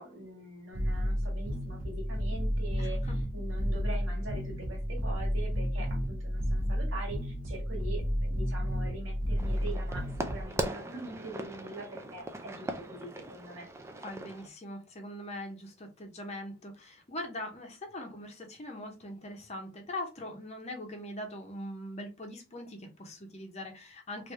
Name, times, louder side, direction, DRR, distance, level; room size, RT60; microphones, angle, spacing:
voice 1, 0.0-13.7, right 2 dB, 65° right, 0 dB, 1.5 m, -43 dB
sound 1, 0.7-10.4, equal, 45° right, 0.8 m, -31 dB
voice 2, 2.8-3.2 14.0-24.3, left 1 dB, 30° left, 3 dB, 0.7 m, -41 dB
sound 2, 9.4-14.5, right 1 dB, 15° right, 0.3 m, -39 dB
3.2 x 2.6 x 3.2 m, 0.29 s
head